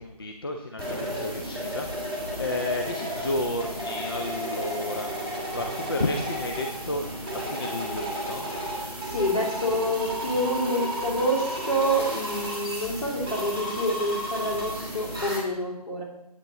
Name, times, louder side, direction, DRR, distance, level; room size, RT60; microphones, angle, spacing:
voice 1, 0.0-5.1 5.5-8.5, left 1 dB, 35° left, 4 dB, 0.6 m, -32 dB
sound 1, 0.8-15.4, equal, 5° left, 1.2 m, -33 dB
voice 2, 9.0-16.0, equal, 60° left, -2 dB, 3.0 m, -27 dB
8.4 x 7.5 x 4.0 m, 0.92 s
figure-of-eight pair, 155°, 21 cm